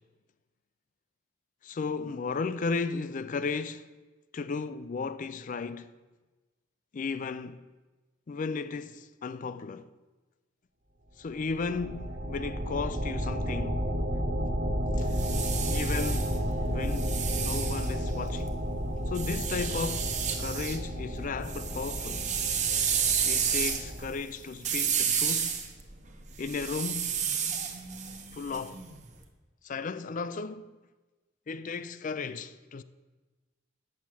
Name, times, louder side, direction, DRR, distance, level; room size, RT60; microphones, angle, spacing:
voice 1, 1.6-3.9 4.3-5.9 6.9-7.6 8.3-9.9 11.2-13.8 15.0-15.1 15.7-16.3 16.6-18.6 19.1-20.1 20.4-22.4 23.2-25.6 26.4-27.5 28.3-28.8 29.6-30.7 31.5-32.8, left 4 dB, 40° left, 0.4 m, -35 dB
sound 1, 11.3-24.1, equal, 50° right, 1.6 m, -32 dB
sound 2, 14.9-18.5 19.1-20.8 21.1-29.1, right 7 dB, 35° right, 0.9 m, -31 dB
8.4 x 6.3 x 7.5 m
head